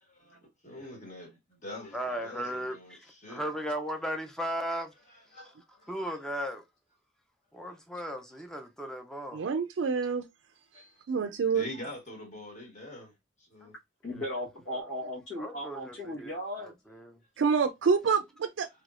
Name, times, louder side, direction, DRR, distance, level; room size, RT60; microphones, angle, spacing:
voice 1, 0.0-3.4 5.1-5.9 10.7-10.8 11.5-13.7, left 1 dB, 40° left, 1.2 m, -45 dB
voice 2, 1.9-4.9 5.9-6.6 7.5-9.4 13.6-13.7 14.1-14.2 15.4-16.3 16.6-17.2, equal, 5° left, 0.5 m, -36 dB
voice 3, 9.3-10.3 10.8-11.7 17.4-18.7, right 5 dB, 80° right, 0.4 m, -27 dB
voice 4, 14.0-16.7, left 1 dB, 80° left, 1.3 m, -36 dB
3.2 x 2.9 x 2.4 m
head